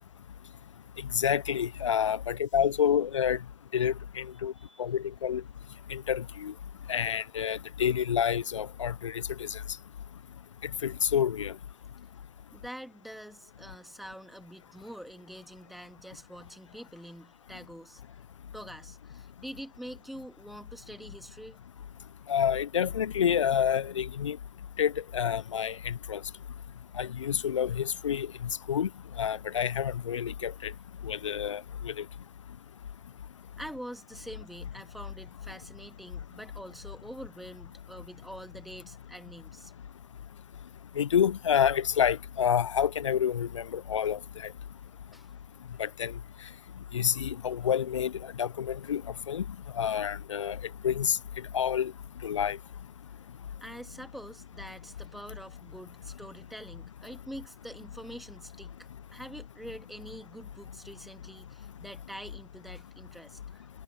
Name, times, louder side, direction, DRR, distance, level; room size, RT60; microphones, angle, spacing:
voice 1, 1.1-3.4 3.7-4.5 4.8-5.4 5.9-6.5 6.9-9.6 10.8-11.5 22.3-24.4 24.8-26.2 27.0-28.3 28.7-28.9 29.2-30.7 31.0-32.0 41.0-44.5 45.8-46.1 46.9-48.1 48.4-49.0 49.3-49.4 49.8-50.6 50.8-51.2 51.5-51.9 52.2-52.6, left 8 dB, 85° left, 0.4 m, -28 dB
voice 2, 12.5-18.0 18.5-21.9 31.3-31.4 33.6-39.7 45.1-45.3 47.6-47.7 53.6-63.7, equal, ahead, 2.3 m, -45 dB
hypercardioid pair, 125°, 15 cm